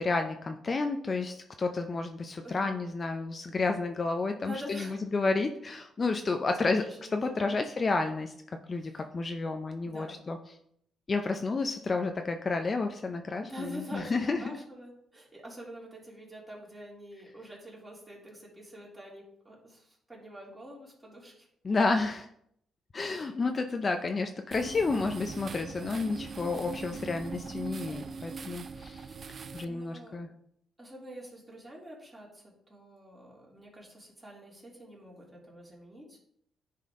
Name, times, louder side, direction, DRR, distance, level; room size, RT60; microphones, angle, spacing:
voice 1, 0.0-6.9 7.1-10.4 11.1-14.6 21.6-22.3 22.9-29.1 29.5-30.3, left 3 dB, 35° left, 5 dB, 0.6 m, -31 dB
voice 2, 2.4-2.8 4.4-5.0 6.6-7.6 8.7-9.0 9.8-10.2 13.4-21.5 23.1-23.4 27.8-28.5 29.6-30.2 30.8-36.2, equal, 15° right, -4 dB, 3.0 m, -46 dB
sound 1, 24.5-29.6, right 4 dB, 45° right, 0.5 m, -41 dB
9.9 x 4.2 x 3.7 m, 0.71 s
cardioid pair, 90°, 0 cm